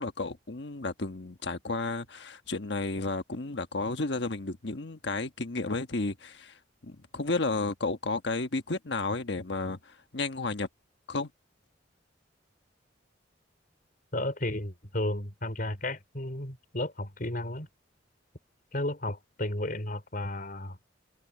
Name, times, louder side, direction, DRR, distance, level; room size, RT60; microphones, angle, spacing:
voice 1, 0.0-10.7 11.1-11.3, left 3 dB, 65° left, 1.4 m, -32 dB
voice 2, 14.1-17.7 18.7-20.8, left 1 dB, 45° left, 4.7 m, -33 dB
head